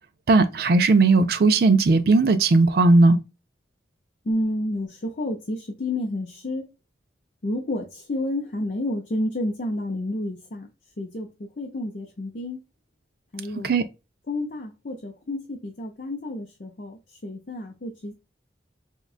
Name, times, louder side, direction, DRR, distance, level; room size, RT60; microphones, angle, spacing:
voice 1, 0.3-3.2 13.6-13.8, right 3 dB, 55° right, 0.4 m, -17 dB
voice 2, 4.3-6.7 7.4-10.7 11.0-12.6 13.3-13.7 14.3-18.1, left 1 dB, 50° left, 0.5 m, -30 dB
3.7 x 2.2 x 2.3 m
head